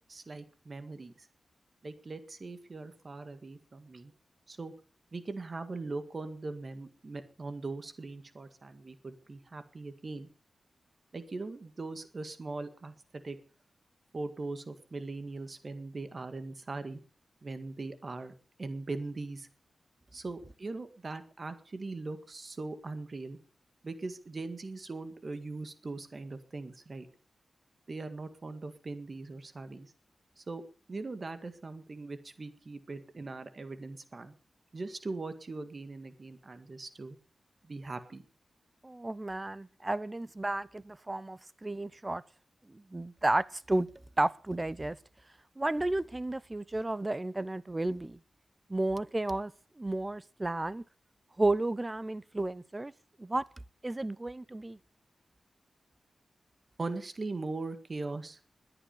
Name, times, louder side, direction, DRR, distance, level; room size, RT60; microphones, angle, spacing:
voice 1, 0.1-1.3 1.8-4.1 4.5-4.7 5.1-10.3 11.1-12.9 13.2-13.4 14.1-17.0 17.4-18.3 18.6-19.5 20.1-23.4 23.8-27.1 27.9-29.9 30.4-30.6 30.9-34.3 34.7-37.2 37.6-38.2 56.8-58.4, right 3 dB, 40° right, 1.8 m, -40 dB
voice 2, 38.8-42.2 42.7-43.9 44.2-45.0 45.6-48.2 48.7-50.8 51.4-52.9 53.2-53.4 53.8-54.8, right 2 dB, 20° right, 0.7 m, -32 dB
21.0 x 8.9 x 6.7 m
wide cardioid pair, 120°, 0 cm